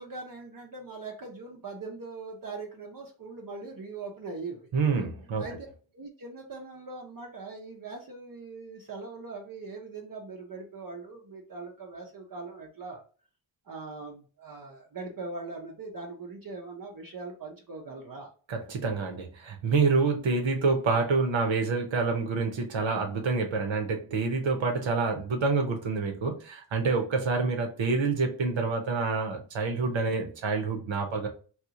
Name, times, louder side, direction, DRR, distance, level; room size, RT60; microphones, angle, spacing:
voice 1, 0.0-4.7 5.4-5.5 5.9-13.0 13.6-18.3, right 3 dB, 45° right, 0 dB, 0.7 m, -41 dB
voice 2, 4.7-5.4 18.5-31.3, right 4 dB, 80° right, 4 dB, 0.9 m, -27 dB
2.9 x 2.3 x 3.6 m, 0.39 s
wide cardioid pair, 115°, 46 cm